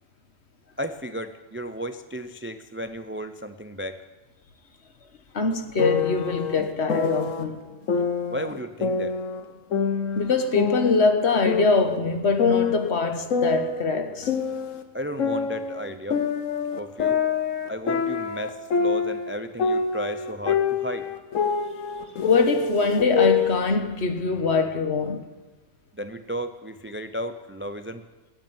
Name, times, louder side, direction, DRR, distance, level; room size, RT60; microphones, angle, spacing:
voice 1, 0.8-4.0 8.3-9.2 14.9-16.2 16.8-17.2 17.7-21.1 25.9-28.0, equal, 20° right, 0.3 m, -34 dB
voice 2, 5.3-7.6 10.1-14.3 22.3-25.3, left 4 dB, 60° left, 1.5 m, -23 dB
sound 1, 5.8-7.4 7.9-9.4 9.7-12.0 12.4-14.8 15.2-19.3 19.6-23.6, left 5 dB, 75° left, 1.4 m, -25 dB
16.5 x 8.9 x 9.3 m
omnidirectional pair, 1.3 m